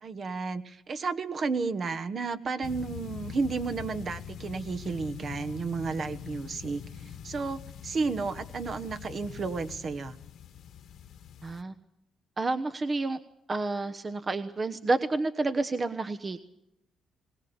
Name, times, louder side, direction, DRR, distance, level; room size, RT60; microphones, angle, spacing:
voice 1, 0.0-6.8 7.2-10.2, right 4 dB, 50° right, 10 dB, 1.4 m, -32 dB
sound 1, 2.6-11.6, left 8 dB, 70° left, 1.5 m, -43 dB
voice 2, 11.4-11.7 12.4-13.2 13.5-16.4, right 3 dB, 30° right, 10 dB, 1.0 m, -29 dB
21.0 x 19.5 x 7.1 m, 0.82 s
cardioid pair, 90°, 0 cm